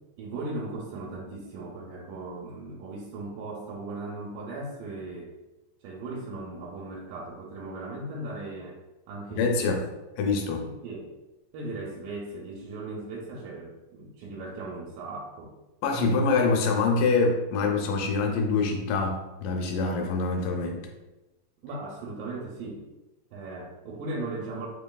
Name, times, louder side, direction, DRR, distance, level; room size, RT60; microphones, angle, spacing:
voice 1, 0.2-5.3 5.8-8.8 9.1-9.8 10.6-11.1 11.5-15.5 21.6-22.8 23.3-24.7, right 2 dB, 85° right, -2 dB, 2.3 m, -37 dB
voice 2, 9.4-9.8 10.2-10.6 15.8-20.9, left 4 dB, 80° left, 2 dB, 2.1 m, -25 dB
5.1 x 3.0 x 2.2 m, 1.0 s
omnidirectional pair, 3.9 m